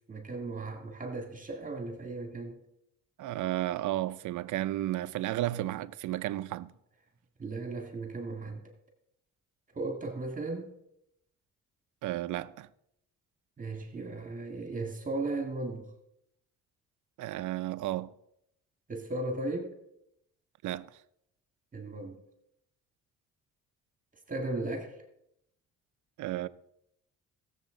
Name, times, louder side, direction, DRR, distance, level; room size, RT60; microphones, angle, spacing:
voice 1, 0.1-2.6 7.4-8.6 9.7-10.7 13.6-15.9 18.9-19.8 21.7-22.2 24.3-25.0, right 2 dB, 25° right, 2.0 m, -36 dB
voice 2, 3.2-6.7 12.0-12.7 17.2-18.1 20.6-20.9 26.2-26.5, right 15 dB, 80° right, 0.6 m, -33 dB
18.0 x 7.4 x 3.9 m
cardioid pair, 90°, 30 cm